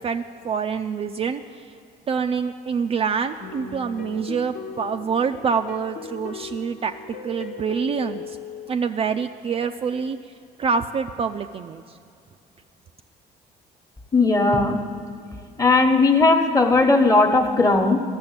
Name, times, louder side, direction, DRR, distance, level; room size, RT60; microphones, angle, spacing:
voice 1, 0.0-1.8 2.1-8.4 8.7-10.2 10.6-11.8, right 6 dB, 35° right, 6 dB, 0.4 m, -26 dB
sound 1, 3.4-8.7, left 5 dB, 55° left, 1.1 m, -38 dB
voice 2, 14.1-14.8 15.6-18.0, left 3 dB, 20° left, 5 dB, 1.2 m, -17 dB
13.0 x 6.8 x 8.8 m, 2.4 s
cardioid pair, 110°, 17 cm